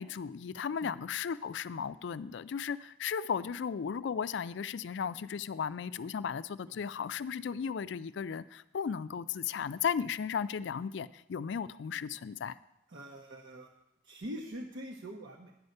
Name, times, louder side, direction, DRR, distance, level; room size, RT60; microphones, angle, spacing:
voice 1, 0.0-12.5, left 7 dB, 65° left, 16 dB, 0.3 m, -35 dB
voice 2, 12.9-13.7 14.0-15.5, equal, 75° right, -1 dB, 0.9 m, -43 dB
10.5 x 5.4 x 7.9 m, 0.85 s
head